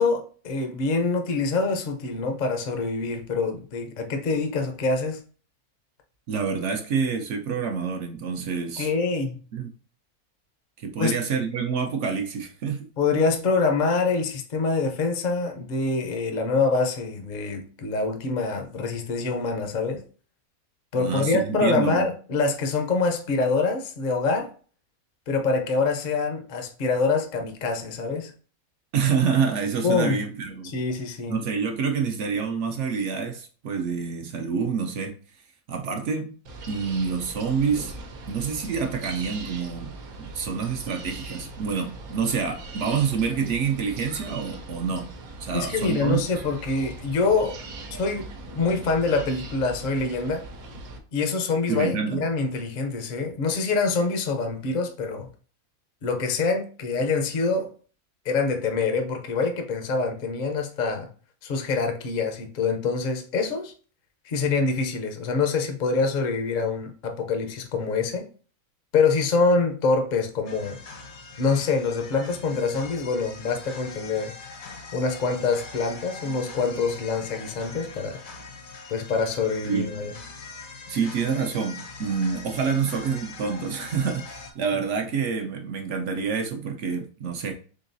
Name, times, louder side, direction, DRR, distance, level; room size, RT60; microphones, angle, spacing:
voice 1, 0.0-5.2 8.8-9.4 11.0-11.2 13.0-20.0 20.9-24.5 25.3-28.3 29.8-30.2 30.7-31.4 45.5-47.6 47.9-48.3 48.5-50.4 51.1-55.3 56.0-57.7 58.2-61.1 61.4-63.7 64.2-68.3 68.9-70.8 71.4-74.3 74.9-78.2 78.9-80.1, left 4 dB, 50° left, 0.6 m, -25 dB
voice 2, 6.3-8.9 9.5-9.7 10.8-12.9 20.9-22.1 28.9-30.7 31.3-35.1 35.7-36.4 36.7-37.9 38.3-45.1 45.4-46.2 51.7-52.2 79.6-79.8 80.9-87.5, right 6 dB, 65° right, 0.8 m, -27 dB
sound 1, 36.5-51.0, right 2 dB, 80° right, 1.2 m, -40 dB
sound 2, 70.5-84.5, left 4 dB, 75° left, 1.2 m, -42 dB
3.8 x 3.6 x 2.6 m
omnidirectional pair, 1.5 m